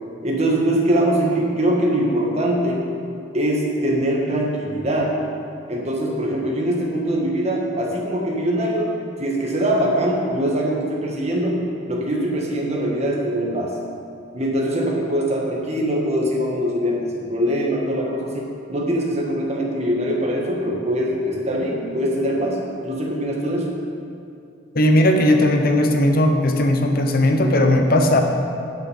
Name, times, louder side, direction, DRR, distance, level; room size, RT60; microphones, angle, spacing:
voice 1, 0.2-2.8 3.3-5.1 5.7-8.9 9.2-13.8 14.3-22.6 22.8-23.7, right 1 dB, 35° right, -2 dB, 1.6 m, -22 dB
voice 2, 24.7-28.2, left 1 dB, 50° left, 4 dB, 1.0 m, -17 dB
11.0 x 6.6 x 5.7 m, 2.5 s
head